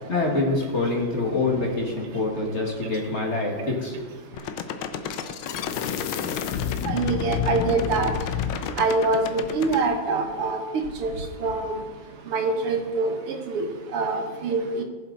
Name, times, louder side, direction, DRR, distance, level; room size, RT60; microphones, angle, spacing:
voice 1, 0.1-4.0, left 3 dB, 35° left, -1 dB, 2.0 m, -25 dB
sound 1, 4.3-9.8, left 8 dB, 75° left, 1.5 m, -29 dB
voice 2, 6.8-8.1 8.8-10.6 11.0-11.1 11.4-11.7 12.3-14.8, right 3 dB, 85° right, 4 dB, 2.3 m, -25 dB
19.0 x 7.6 x 4.1 m, 1.4 s
omnidirectional pair, 2.4 m